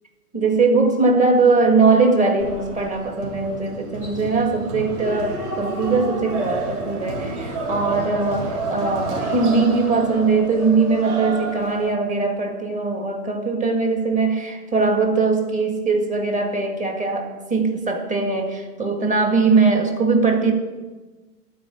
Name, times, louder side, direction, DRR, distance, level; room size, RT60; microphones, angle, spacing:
voice 1, 0.3-20.5, right 4 dB, 15° right, 3 dB, 1.8 m, -20 dB
sound 1, 2.4-11.9, right 2 dB, 65° right, 3.5 m, -30 dB
12.5 x 4.8 x 8.4 m, 1.2 s
hypercardioid pair, 125°, 46 cm